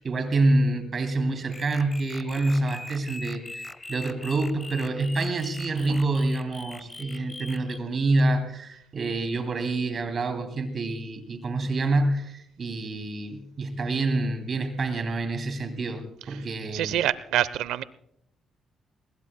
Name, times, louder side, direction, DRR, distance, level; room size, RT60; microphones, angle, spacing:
voice 1, 0.0-16.9, right 2 dB, 45° right, 7 dB, 2.8 m, -27 dB
sound 1, 1.5-7.8, left 2 dB, 15° left, 1.0 m, -42 dB
voice 2, 16.7-17.8, right 12 dB, 90° right, 17 dB, 0.7 m, -25 dB
24.0 x 21.0 x 2.2 m, 0.74 s
cardioid pair, 90°, 0 cm